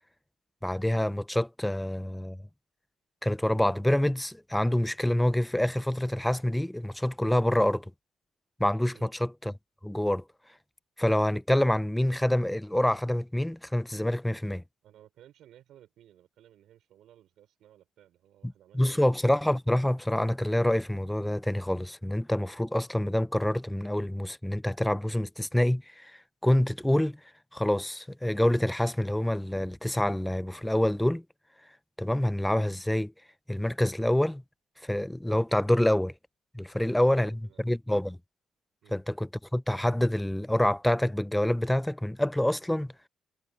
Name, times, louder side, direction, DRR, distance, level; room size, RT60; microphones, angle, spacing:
voice 1, 0.6-2.4 3.2-7.9 8.6-9.5 9.8-10.2 11.0-14.6 18.7-27.2 27.5-31.2 32.0-33.1 33.5-34.4 34.8-36.1 36.5-37.4 37.6-38.2 38.9-42.9, left 1 dB, 5° left, 0.6 m, -26 dB
voice 2, 14.8-19.1 36.7-37.7 38.8-39.0, right 12 dB, 80° right, 5.9 m, -57 dB
cardioid pair, 90°, 0 cm